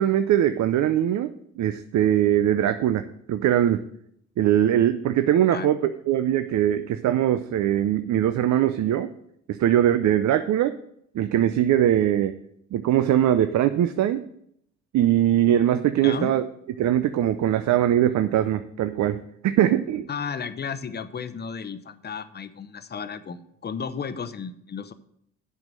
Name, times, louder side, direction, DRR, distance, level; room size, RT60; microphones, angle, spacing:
voice 1, 0.0-3.0 3.3-3.8 4.4-9.1 9.5-10.7 11.1-12.4 12.7-14.2 14.9-16.5 16.8-20.1, right 11 dB, 70° right, 10 dB, 0.6 m, -21 dB
voice 2, 16.0-16.3 20.1-24.9, left 6 dB, 35° left, 12 dB, 0.7 m, -33 dB
7.8 x 5.6 x 7.6 m, 0.73 s
cardioid pair, 90°, 30 cm